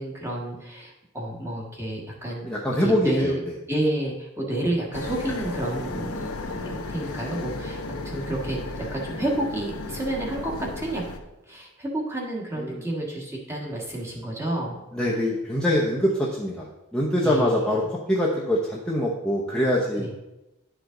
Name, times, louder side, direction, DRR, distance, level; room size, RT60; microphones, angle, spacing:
voice 1, 0.0-2.5 2.8-3.4 3.7-11.0 11.5-14.8 17.2-17.7 20.0-20.1, right 1 dB, 10° right, -3 dB, 1.5 m, -30 dB
voice 2, 2.4-3.3 6.2-6.6 12.6-12.8 14.9-20.1, left 1 dB, 5° left, -6 dB, 0.8 m, -24 dB
sound 1, 4.9-11.2, left 2 dB, 85° left, 0.9 m, -34 dB
11.0 x 5.0 x 3.8 m, 0.96 s
head